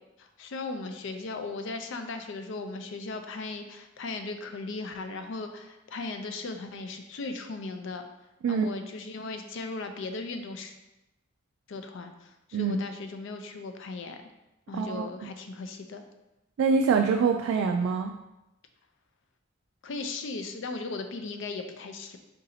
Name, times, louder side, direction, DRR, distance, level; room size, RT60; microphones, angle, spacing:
voice 1, 0.2-8.1 8.5-10.7 11.7-14.2 14.7-16.0 19.8-22.2, left 3 dB, 65° left, 7 dB, 0.4 m, -37 dB
voice 2, 14.7-15.3 16.6-18.1, right 5 dB, 85° right, 4 dB, 0.3 m, -25 dB
3.8 x 2.7 x 4.1 m, 0.96 s
head